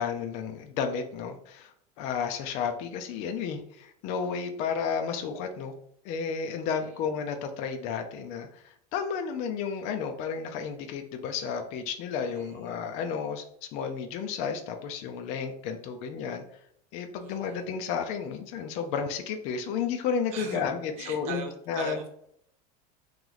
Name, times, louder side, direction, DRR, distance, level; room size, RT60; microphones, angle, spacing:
voice 1, 0.0-5.7 6.0-8.6 8.9-13.4 13.7-16.4 16.9-22.0, left 6 dB, 35° left, 6 dB, 0.4 m, -32 dB
voice 2, 6.6-7.0 12.3-12.8 17.2-17.7 20.3-20.6 21.0-22.1, right 5 dB, 35° right, 2 dB, 0.6 m, -40 dB
3.0 x 3.0 x 3.8 m, 0.70 s
cardioid pair, 180°, 19 cm